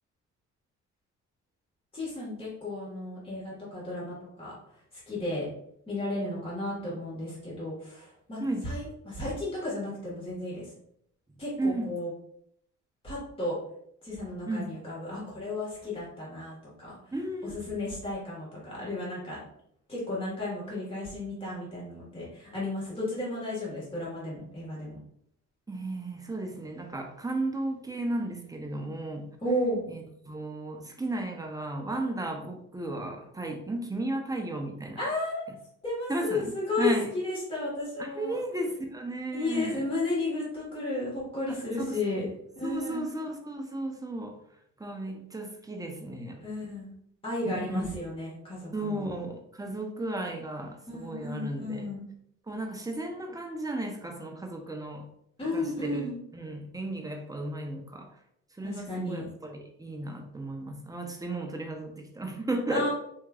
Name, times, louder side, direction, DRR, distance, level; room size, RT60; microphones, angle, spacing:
voice 1, 1.9-4.5 5.1-5.5 5.9-10.7 11.4-12.1 13.0-13.6 14.0-17.0 17.4-19.4 19.9-25.0 29.4-29.8 35.0-35.4 35.8-38.4 39.3-42.3 42.6-43.1 46.4-46.9 47.2-49.1 50.9-52.0 55.4-56.2 58.6-59.2 62.7-62.9, left 2 dB, 20° left, -7 dB, 1.4 m, -33 dB
voice 2, 11.6-11.9 14.5-14.7 17.1-17.6 25.7-29.3 29.9-35.0 36.1-37.1 38.0-39.9 41.5-41.6 41.9-42.0 42.6-44.4 44.8-46.4 47.5-48.0 48.7-51.9 52.5-55.1 55.5-56.1 56.3-58.1 58.6-62.9, right 1 dB, 10° right, 3 dB, 0.6 m, -34 dB
3.6 x 3.0 x 2.3 m, 0.71 s
cardioid pair, 90°, 30 cm